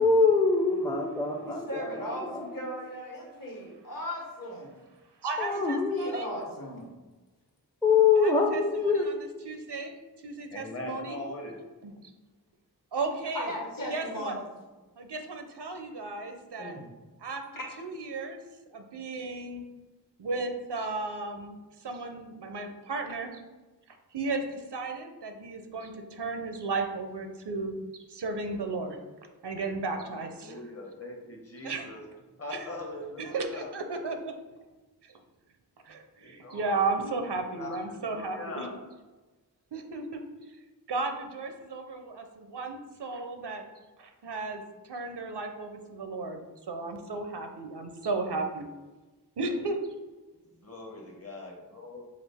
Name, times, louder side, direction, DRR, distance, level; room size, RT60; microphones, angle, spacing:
voice 1, 0.0-2.6 5.4-6.0 7.8-9.1, left 4 dB, 10° left, 1 dB, 0.4 m, -24 dB
voice 2, 1.5-4.7 5.5-5.7 5.9-6.9 13.3-14.5 16.6-16.9 17.5-17.7, equal, 55° left, -1 dB, 1.1 m, -37 dB
voice 3, 5.2-6.3 8.1-10.0 10.2-11.2 11.8-12.1 12.9-13.5 13.9-14.4 15.0-16.8 17.2-17.4 17.8-18.4 18.7-19.6 20.2-23.4 23.9-27.7 28.1-29.0 29.4-30.3 31.6-31.9 32.5-32.7 33.2-34.3 35.0-35.1 35.8-38.7 39.7-40.2 40.9-43.6 44.0-48.7 49.4-49.8, right 3 dB, 80° right, 5 dB, 0.6 m, -34 dB
voice 4, 10.5-11.6 29.9-30.1 30.4-32.0 32.4-33.7 35.9-37.1 37.5-38.9 50.5-52.1, left 2 dB, 35° left, 0 dB, 0.9 m, -41 dB
5.0 x 2.4 x 3.4 m, 1.2 s
wide cardioid pair, 45°, 40 cm